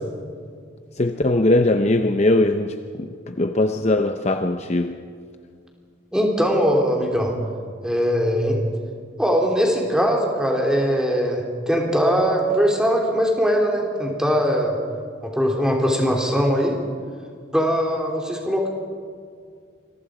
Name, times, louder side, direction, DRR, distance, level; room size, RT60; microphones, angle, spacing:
voice 1, 1.0-5.0, left 2 dB, 35° left, 6 dB, 0.7 m, -20 dB
voice 2, 6.1-7.3 7.8-8.6 9.2-14.8 15.2-16.8 17.5-18.7, equal, 5° right, 0 dB, 3.0 m, -21 dB
27.0 x 22.0 x 5.0 m, 2.1 s
head